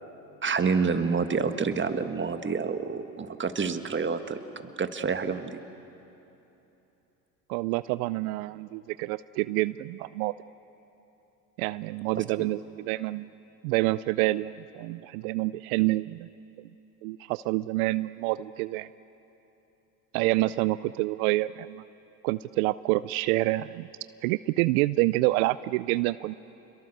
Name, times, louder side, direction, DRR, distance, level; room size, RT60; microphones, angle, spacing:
voice 1, 0.4-4.4 4.8-5.6 12.1-12.5, right 5 dB, 25° right, 8 dB, 1.6 m, -28 dB
voice 2, 7.5-10.3 11.6-13.3 13.6-16.3 17.0-18.9 20.1-21.8 22.2-23.9 24.2-26.3, right 19 dB, 80° right, 17 dB, 0.5 m, -27 dB
28.0 x 22.5 x 6.6 m, 3.0 s
hypercardioid pair, 75°, 42 cm